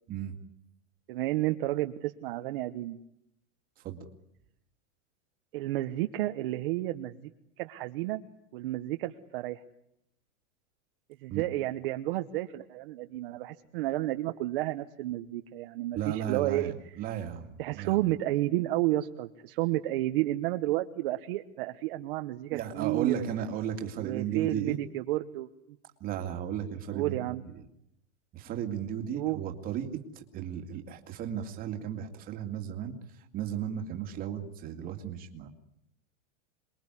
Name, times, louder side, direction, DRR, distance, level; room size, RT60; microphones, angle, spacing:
voice 1, 1.1-3.0 5.5-7.3 7.6-8.2 8.5-9.6 11.2-16.7 17.6-23.2 24.0-25.5 26.9-27.4 29.1-29.4, right 16 dB, 45° right, 7 dB, 1.1 m, -31 dB
voice 2, 15.9-18.0 22.5-24.8 26.0-27.7 28.3-33.0 33.3-35.5, right 9 dB, 20° right, 5 dB, 2.3 m, -35 dB
27.5 x 22.0 x 9.9 m, 0.78 s
supercardioid pair, 180°, 39 cm